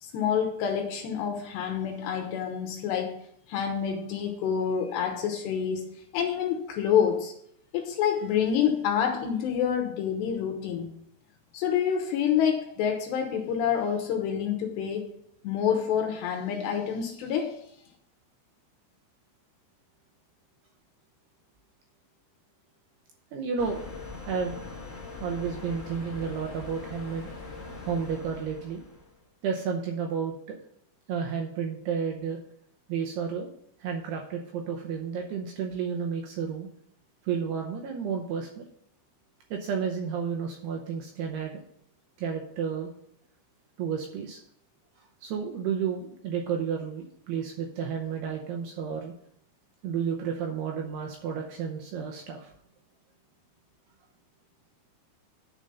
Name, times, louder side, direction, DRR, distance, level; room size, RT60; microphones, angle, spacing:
voice 1, 0.0-3.2 3.5-7.3 7.7-10.9 11.5-15.1 15.4-17.6, left 8 dB, 75° left, 4 dB, 2.7 m, -27 dB
voice 2, 23.3-23.8 24.3-24.6 25.2-27.3 27.8-28.8 29.4-30.6 31.1-32.4 32.9-33.5 33.8-36.7 37.2-38.6 39.5-41.6 42.2-42.9 43.8-44.4 45.2-49.1 49.8-52.5, right 6 dB, 75° right, 2 dB, 2.5 m, -31 dB
sound 1, 23.6-29.1, left 3 dB, 30° left, 1.5 m, -41 dB
9.4 x 4.9 x 5.5 m, 0.70 s
omnidirectional pair, 5.5 m